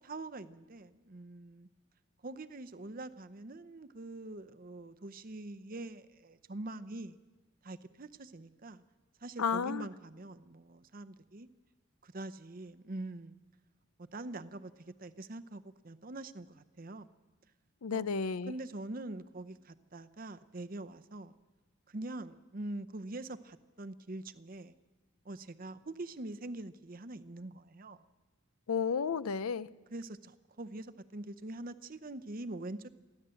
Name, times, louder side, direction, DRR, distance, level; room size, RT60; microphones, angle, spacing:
voice 1, 0.0-1.7 2.2-7.2 7.6-8.8 9.2-11.5 12.0-13.3 14.0-17.1 17.9-18.1 18.5-21.3 21.9-24.7 25.2-28.0 29.9-32.9, right 2 dB, 40° right, 0.7 m, -44 dB
voice 2, 9.4-9.9 17.8-18.5 28.7-29.7, left 5 dB, 90° left, 0.6 m, -32 dB
29.0 x 11.5 x 7.8 m
head